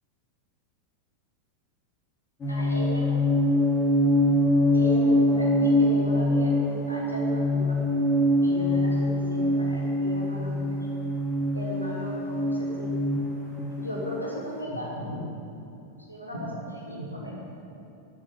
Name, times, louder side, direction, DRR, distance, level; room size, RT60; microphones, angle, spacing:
voice 1, 2.4-3.1 4.7-7.8 8.4-10.9 11.5-13.0 13.8-15.6 16.0-17.8, equal, 85° left, -4 dB, 3.2 m, -36 dB
sound 1, 2.4-14.4, left 1 dB, 25° left, 2.7 m, -24 dB
12.0 x 6.9 x 8.4 m, 2.8 s
figure-of-eight pair, 90°, 0 cm